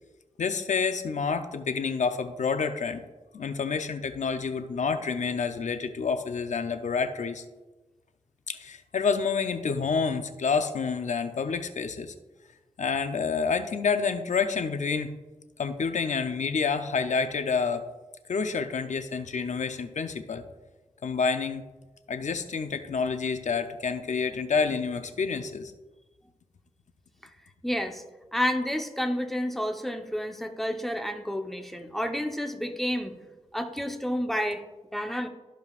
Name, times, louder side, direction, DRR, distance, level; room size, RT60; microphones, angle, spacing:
voice 1, 0.4-3.0 3.3-7.4 8.5-12.1 12.8-15.1 15.6-17.8 18.3-20.4 21.0-21.6 22.1-25.7, left 5 dB, 80° left, 8 dB, 0.6 m, -28 dB
voice 2, 27.6-28.0 28.3-33.2 33.5-34.6 34.9-35.3, equal, ahead, 4 dB, 0.9 m, -30 dB
13.5 x 5.1 x 2.5 m, 1.2 s
cardioid pair, 60°, 12 cm